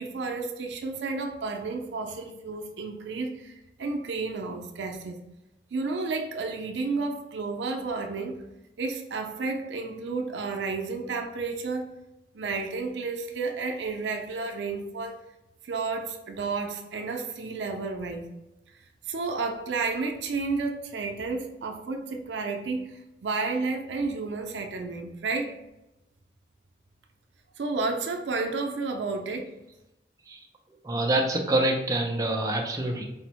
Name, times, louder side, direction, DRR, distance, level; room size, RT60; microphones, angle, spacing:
voice 1, 0.0-5.2 5.7-8.4 8.8-11.9 12.3-15.2 15.6-18.3 19.1-25.5 27.6-29.5, right 3 dB, 85° right, 4 dB, 0.5 m, -31 dB
voice 2, 30.8-33.0, right 1 dB, 20° right, 0 dB, 0.3 m, -26 dB
4.2 x 2.0 x 2.9 m, 0.92 s
head